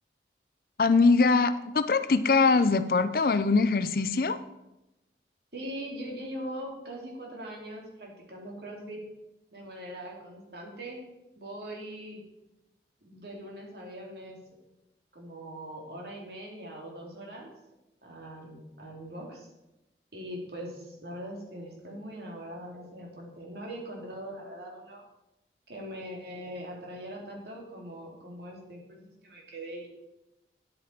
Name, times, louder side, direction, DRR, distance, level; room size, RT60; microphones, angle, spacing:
voice 1, 0.8-4.4, left 4 dB, 55° left, 12 dB, 0.5 m, -22 dB
voice 2, 5.5-9.0 9.5-11.0 11.4-12.2 13.0-14.4 15.1-17.5 18.0-19.5 20.1-25.0 25.7-29.9, equal, 65° right, -1 dB, 2.6 m, -41 dB
9.8 x 8.2 x 4.4 m, 0.93 s
head